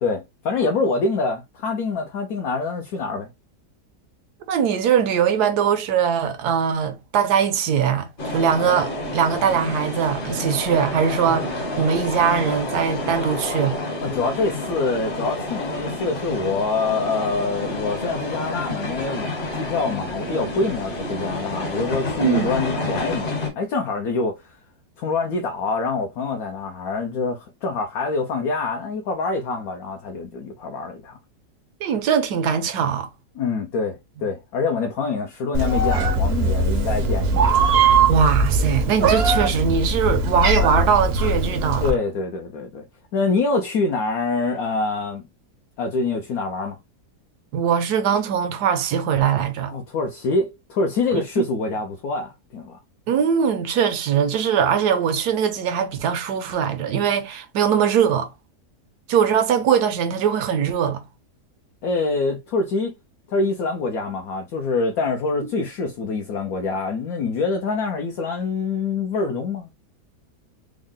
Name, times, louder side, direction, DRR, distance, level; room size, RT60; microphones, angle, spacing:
voice 1, 0.0-3.3 14.0-24.5 25.0-31.2 33.4-37.5 41.8-42.8 43.1-45.2 45.8-46.8 49.7-52.8 61.8-62.9 63.3-69.7, left 3 dB, 70° left, 1.0 m, -25 dB
voice 2, 4.5-13.8 22.2-22.6 31.8-33.1 38.1-41.9 47.5-49.7 51.1-51.2 53.1-58.3 59.1-61.0, right 7 dB, 75° right, 1.2 m, -21 dB
sound 1, 8.2-23.5, left 1 dB, 40° left, 0.9 m, -29 dB
Meow, 35.5-41.9, right 3 dB, 55° right, 0.7 m, -20 dB
3.6 x 2.1 x 3.6 m
omnidirectional pair, 1.8 m